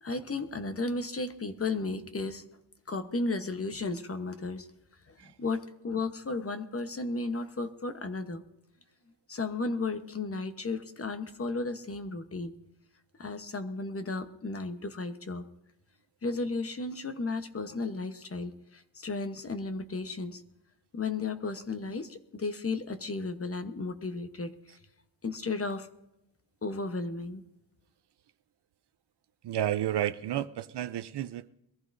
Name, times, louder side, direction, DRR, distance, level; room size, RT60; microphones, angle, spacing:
voice 1, 0.0-2.4 2.9-4.7 5.4-8.4 9.3-12.6 13.2-15.5 16.2-20.4 20.9-24.5 25.2-25.9 26.6-27.4, left 3 dB, 30° left, 9 dB, 1.0 m, -34 dB
voice 2, 29.4-31.5, right 11 dB, 60° right, 13 dB, 0.6 m, -31 dB
22.5 x 14.5 x 2.6 m, 0.87 s
cardioid pair, 110°, 45 cm